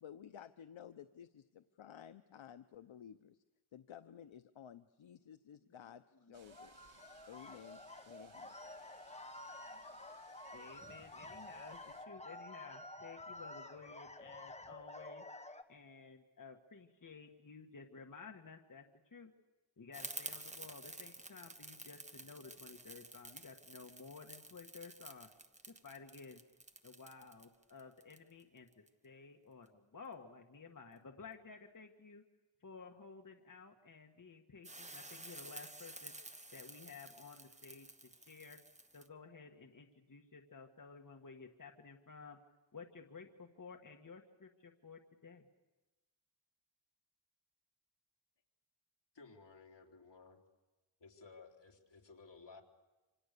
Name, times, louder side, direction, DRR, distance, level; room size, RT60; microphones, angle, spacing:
voice 1, 0.0-3.4 3.7-6.0 6.3-6.7 7.3-7.8 8.1-8.5, left 9 dB, 80° left, 10 dB, 0.9 m, -54 dB
sound 1, 6.3-12.1, right 6 dB, 80° right, 1.9 m, -66 dB
sound 2, 6.5-15.6, left 2 dB, 15° left, 1.4 m, -51 dB
voice 2, 10.5-15.2 15.7-18.8 19.1-19.3 19.8-25.3 25.7-26.4 26.8-32.2 32.6-36.2 36.5-38.6 38.9-42.4 42.7-45.4, left 5 dB, 40° left, 3 dB, 1.7 m, -54 dB
sound 3, 19.9-28.9 34.6-39.1, right 2 dB, 15° right, 1.2 m, -51 dB
voice 3, 49.1-50.4 51.0-52.6, left 4 dB, 60° left, 1 dB, 3.6 m, -57 dB
27.5 x 26.5 x 6.8 m, 1.2 s
wide cardioid pair, 110°, 46 cm